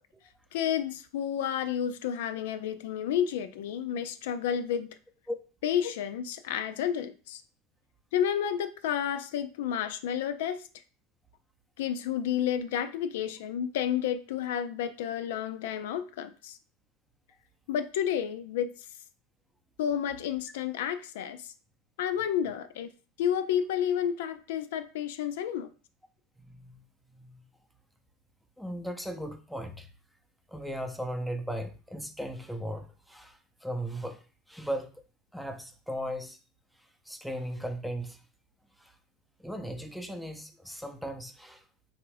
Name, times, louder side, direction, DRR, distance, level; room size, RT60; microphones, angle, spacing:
voice 1, 0.5-5.0 5.6-7.4 8.1-10.7 11.8-16.6 17.7-18.9 19.8-21.5 22.0-22.9 23.2-25.7, left 9 dB, 80° left, 0.3 m, -31 dB
voice 2, 26.4-26.8 27.1-27.4 28.6-29.9 30.5-35.0 35.3-36.4 37.1-38.2 38.8-38.9 39.4-41.6, equal, ahead, 0.5 m, -37 dB
3.4 x 2.5 x 3.2 m
supercardioid pair, 105°, 0 cm